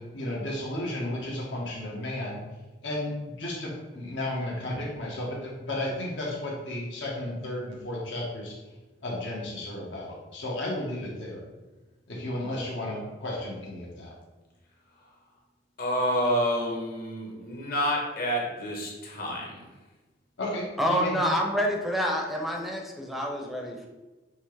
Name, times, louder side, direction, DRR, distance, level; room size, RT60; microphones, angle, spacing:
voice 1, 0.0-2.4 2.8-8.6 9.0-11.4 12.1-14.1 20.4-21.2, left 1 dB, 80° left, -3 dB, 1.3 m, -33 dB
voice 2, 15.8-19.7, equal, 55° left, -1 dB, 1.2 m, -28 dB
voice 3, 20.8-23.9, equal, ahead, 0 dB, 0.5 m, -27 dB
5.6 x 2.9 x 3.3 m, 1.2 s
head